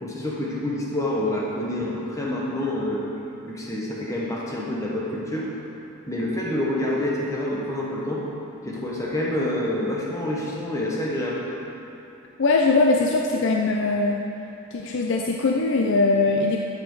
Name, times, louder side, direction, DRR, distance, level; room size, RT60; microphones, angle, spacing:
voice 1, 0.0-3.0 3.5-5.5 6.1-8.2 8.6-11.4, left 1 dB, 15° left, -4 dB, 1.3 m, -27 dB
voice 2, 12.4-14.2 14.7-16.6, left 3 dB, 60° left, 0 dB, 0.5 m, -21 dB
12.5 x 6.1 x 4.8 m, 2.9 s
head